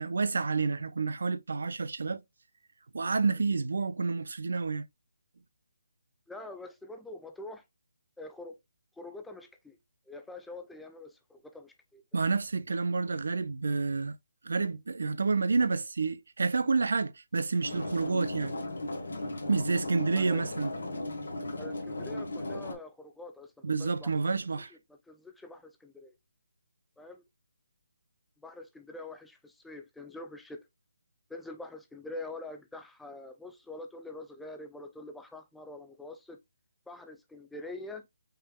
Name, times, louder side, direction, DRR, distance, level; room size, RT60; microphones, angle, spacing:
voice 1, 0.0-2.2 2.9-4.9 12.1-14.2 14.4-18.6 19.5-20.7 23.6-24.7, right 4 dB, 70° right, 0.4 m, -29 dB
voice 2, 6.3-7.6 8.2-8.6 9.0-9.8 10.1-12.2 20.1-20.4 21.6-24.1 24.7-24.8 25.1-26.1 27.0-27.2 28.4-30.7 31.3-36.4 36.9-38.0, left 2 dB, 5° left, 0.5 m, -45 dB
sound 1, 17.6-22.7, left 2 dB, 75° left, 1.5 m, -36 dB
5.6 x 3.5 x 2.2 m
figure-of-eight pair, 150°, 0 cm